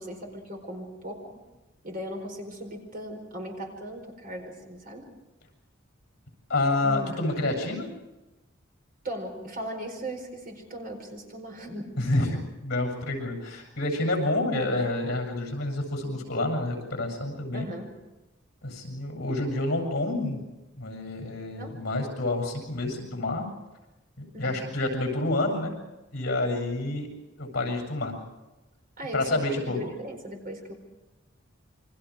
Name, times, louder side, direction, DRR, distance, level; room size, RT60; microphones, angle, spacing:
voice 1, 0.0-1.4 1.8-5.1 6.8-7.7 9.0-12.2 12.8-12.9 17.5-17.9 21.5-21.8 24.3-24.6 29.0-30.7, right 1 dB, 45° right, 3 dB, 4.8 m, -38 dB
voice 2, 6.5-7.9 12.0-17.7 18.6-20.4 20.8-23.5 24.4-25.7 26.1-27.1 27.4-28.2 29.1-29.9, left 2 dB, 55° left, 3 dB, 7.6 m, -28 dB
28.5 x 24.5 x 5.0 m, 1.1 s
head